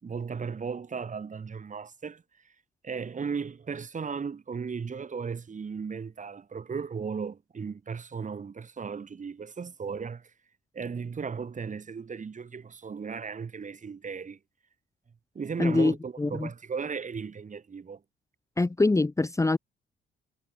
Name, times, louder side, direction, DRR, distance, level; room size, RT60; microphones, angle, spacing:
voice 1, 0.0-2.5 2.8-10.3 10.7-14.4 15.3-18.0, right 5 dB, 40° right, 5.0 m, -36 dB
voice 2, 15.6-16.5 18.6-19.6, left 2 dB, 15° left, 1.2 m, -24 dB
cardioid pair, 90°, 20 cm